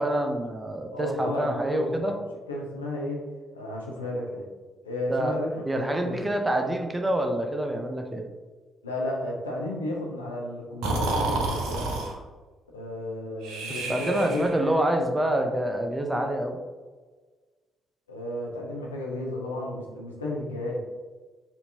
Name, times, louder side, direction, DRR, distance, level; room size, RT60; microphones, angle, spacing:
voice 1, 0.0-2.1 5.1-5.3 5.6-8.2 13.7-16.6, right 1 dB, 15° right, 4 dB, 0.6 m, -27 dB
voice 2, 0.9-3.2 3.5-4.4 4.8-6.3 8.8-12.0 12.7-14.5 18.1-20.8, left 1 dB, 85° left, -2 dB, 0.5 m, -33 dB
Breathing, 10.8-12.1 13.4-14.7, right 2 dB, 70° right, 0.5 m, -29 dB
4.3 x 2.7 x 2.7 m, 1.3 s
figure-of-eight pair, 40°, 0 cm